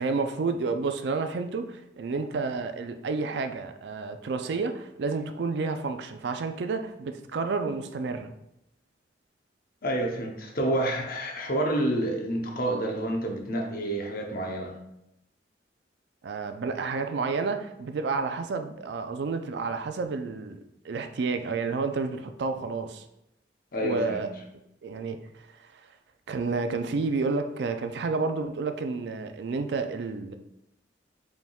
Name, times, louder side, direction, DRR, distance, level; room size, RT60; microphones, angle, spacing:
voice 1, 0.0-8.3 16.2-23.0 23.8-24.3 24.8-25.8 26.3-30.3, right 4 dB, 70° right, 8 dB, 0.4 m, -30 dB
voice 2, 9.8-14.8 23.7-24.2, right 1 dB, 55° left, 2 dB, 0.8 m, -28 dB
5.1 x 3.4 x 2.3 m, 0.84 s
head